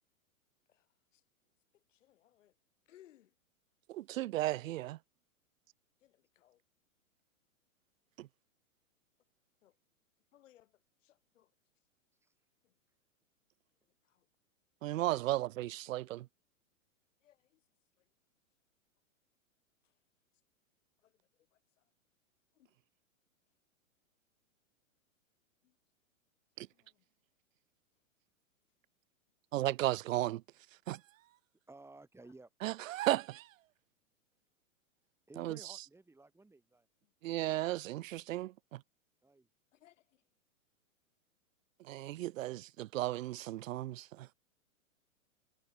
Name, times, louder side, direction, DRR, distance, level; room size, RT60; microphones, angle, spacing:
voice 1, 1.7-2.5 2.9-3.3 6.0-6.6 9.6-9.8 10.3-11.5 12.6-12.7 14.0-14.3 17.2-17.6 18.0-18.1 19.8-19.9 21.0-21.2 21.5-21.8 22.5-22.7 25.6-25.7 26.7-27.0 39.7-40.2, left 13 dB, 60° left, 7.6 m, -66 dB
voice 2, 3.9-5.0 8.2-8.3 14.8-16.3 26.6-26.7 29.5-30.4 30.9-31.0 32.6-33.5 35.4-35.6 37.2-38.8 41.8-44.3, right 15 dB, 70° right, 0.5 m, -35 dB
voice 3, 12.1-12.5 31.7-32.5 35.3-36.9 39.2-39.5, right 2 dB, 5° right, 7.2 m, -56 dB
hypercardioid pair, 125°, 41 cm